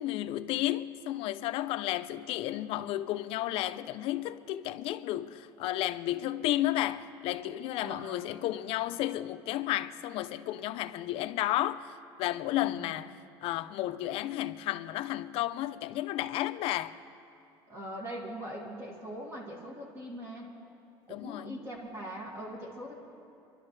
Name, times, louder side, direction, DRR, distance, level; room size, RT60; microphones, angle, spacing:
voice 1, 0.0-11.9 12.2-13.1 13.4-16.9 21.1-21.6, left 14 dB, 65° left, 0.5 m, -32 dB
voice 2, 7.8-8.3 12.6-13.0 17.7-20.5 21.1-22.9, equal, 25° right, 2.1 m, -41 dB
28.5 x 12.0 x 3.2 m
cardioid pair, 130°, 10 cm